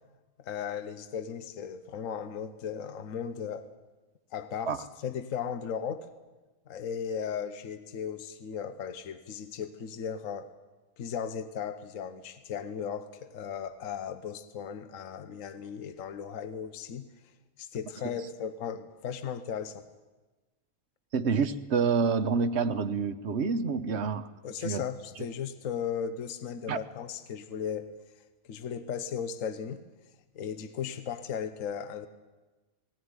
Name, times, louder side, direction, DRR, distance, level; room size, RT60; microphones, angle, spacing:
voice 1, 0.4-3.7 4.3-4.8 5.0-6.1 6.7-10.5 11.0-17.1 17.6-19.8 24.4-27.9 28.5-29.8 30.3-32.1, left 7 dB, 65° left, 11 dB, 1.3 m, -36 dB
voice 2, 21.1-24.3 24.6-24.8 26.7-26.8, right 5 dB, 55° right, 11 dB, 1.1 m, -28 dB
18.0 x 18.0 x 9.6 m, 1.2 s
omnidirectional pair, 1.5 m